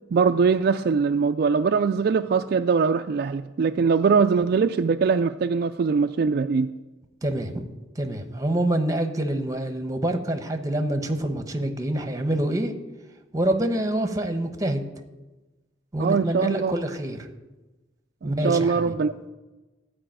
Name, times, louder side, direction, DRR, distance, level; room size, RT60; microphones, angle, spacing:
voice 1, 0.1-6.7 16.0-16.7 18.2-19.3, right 5 dB, 55° right, 8 dB, 0.3 m, -22 dB
voice 2, 7.2-7.7 7.9-12.7 13.3-14.8 15.9-17.3 18.2-18.9, right 1 dB, 20° right, 7 dB, 1.0 m, -26 dB
13.5 x 4.9 x 8.9 m, 1.1 s
head